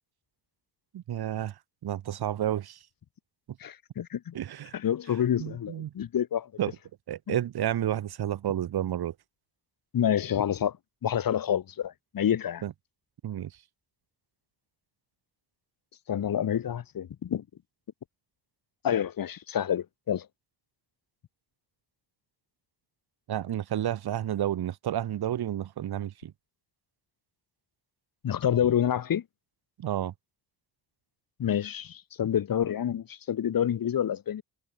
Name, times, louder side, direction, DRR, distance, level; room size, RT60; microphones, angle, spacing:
voice 1, 0.9-1.5 1.8-2.8 4.3-4.7 5.4-5.9 6.6-6.7 7.1-9.1 12.6-12.7 13.2-13.5 23.3-26.3 29.8-30.1, right 11 dB, 70° right, 2.5 m, -30 dB
voice 2, 3.6-4.4 4.7-6.5 7.3-7.4 9.9-10.8 11.0-12.6 16.1-17.4 18.8-20.3 28.2-29.2 31.4-34.4, left 9 dB, 55° left, 4.0 m, -28 dB
wide cardioid pair, 175°, 40 cm